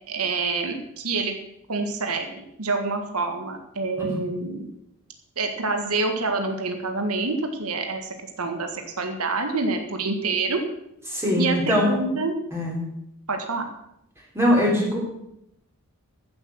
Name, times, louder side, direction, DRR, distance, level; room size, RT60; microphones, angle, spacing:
voice 1, 0.1-1.4 1.7-4.7 5.4-10.6 11.4-12.3 13.3-13.7, right 3 dB, 80° right, 5 dB, 1.8 m, -27 dB
voice 2, 11.1-12.0 12.5-12.8 14.3-15.0, equal, 10° right, -3 dB, 3.6 m, -21 dB
15.0 x 8.0 x 6.4 m, 0.79 s
head